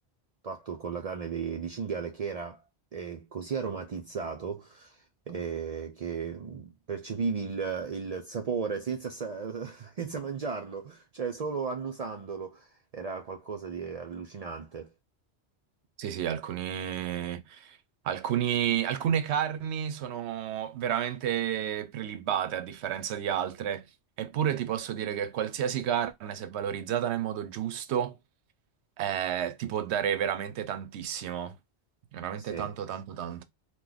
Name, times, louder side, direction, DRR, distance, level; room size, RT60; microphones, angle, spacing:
voice 1, 0.4-2.6 2.9-5.0 5.3-14.9 32.4-32.7, right 5 dB, 55° right, 0.4 m, -35 dB
voice 2, 16.0-17.8 18.0-23.8 24.2-28.2 29.0-31.6 32.1-33.4, right 9 dB, 75° right, 0.8 m, -31 dB
3.0 x 2.1 x 3.8 m
omnidirectional pair, 1.2 m